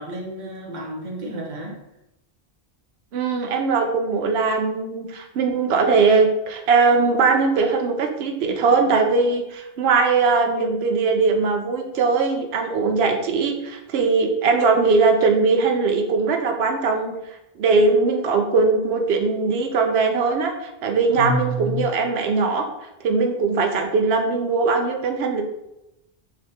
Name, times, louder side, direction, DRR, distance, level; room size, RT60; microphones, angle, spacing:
voice 1, 0.0-1.8 21.1-21.9, equal, 50° right, -1 dB, 1.0 m, -29 dB
voice 2, 3.1-17.1 17.6-22.7 23.0-25.4, right 4 dB, 80° right, 4 dB, 0.9 m, -20 dB
5.1 x 3.3 x 2.8 m, 0.90 s
omnidirectional pair, 1.0 m